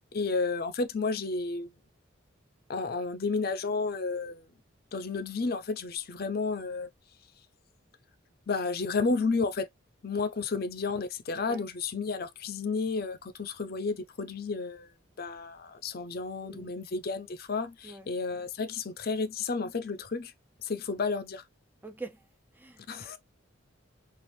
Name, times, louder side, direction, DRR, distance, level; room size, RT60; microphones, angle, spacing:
voice 1, 0.1-1.7 2.7-4.5 4.9-6.9 8.5-9.7 10.0-14.9 15.2-20.3 20.6-21.4 22.9-23.2, left 4 dB, 50° left, 0.5 m, -32 dB
voice 2, 11.3-11.7 16.4-16.7 17.8-18.1 21.8-22.2 22.5-23.2, right 3 dB, 10° right, 0.4 m, -45 dB
4.4 x 2.4 x 3.0 m
head